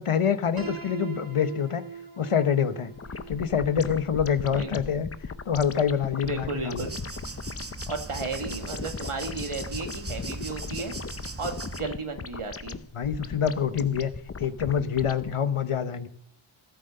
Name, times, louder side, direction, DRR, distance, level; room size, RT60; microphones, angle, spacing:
voice 1, 0.0-1.8 2.2-2.9 3.3-5.1 5.5-6.9 12.9-14.1 14.4-16.1, left 7 dB, 90° left, 12 dB, 0.9 m, -26 dB
Piano, 0.6-6.4, right 6 dB, 45° right, 1.3 m, -42 dB
sound 1, 3.0-15.3, left 5 dB, 30° left, 0.6 m, -38 dB
voice 2, 6.2-6.9 7.9-10.9 11.4-12.8, right 3 dB, 80° right, 5 dB, 1.9 m, -34 dB
sound 2, 6.8-11.8, right 2 dB, 30° right, 1.1 m, -39 dB
13.5 x 8.0 x 6.6 m, 0.70 s
wide cardioid pair, 40°, 50 cm